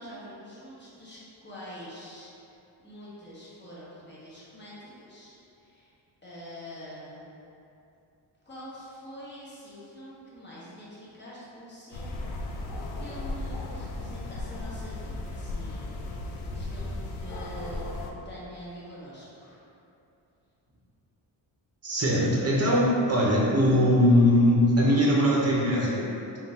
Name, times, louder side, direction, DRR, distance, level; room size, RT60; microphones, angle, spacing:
voice 1, 0.0-2.5 2.8-5.9 6.2-7.3 8.4-15.8 16.4-19.6 20.7-20.8, equal, 25° left, -9 dB, 1.1 m, -45 dB
sound 1, 11.9-18.1, left 2 dB, 85° left, 0.5 m, -35 dB
voice 2, 21.8-26.1, equal, 30° right, -4 dB, 0.8 m, -21 dB
3.7 x 2.4 x 4.1 m, 2.7 s
wide cardioid pair, 120°, 46 cm